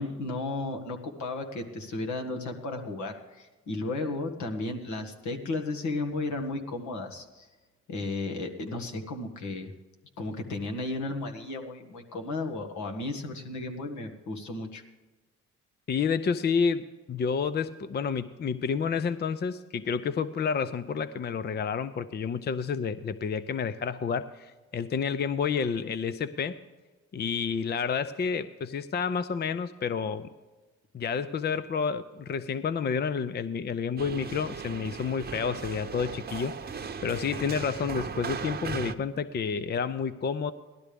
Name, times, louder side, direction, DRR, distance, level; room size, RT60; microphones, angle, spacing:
voice 1, 0.0-7.5 7.9-9.7 10.2-14.8, left 2 dB, 70° left, 4 dB, 1.8 m, -34 dB
voice 2, 15.9-26.6 27.1-30.3 30.9-36.5 37.0-40.5, left 6 dB, 35° left, 13 dB, 0.5 m, -30 dB
sound 1, 34.0-38.9, right 5 dB, 30° right, 0.9 m, -37 dB
17.5 x 12.5 x 3.5 m, 1.2 s
cardioid pair, 90°, 30 cm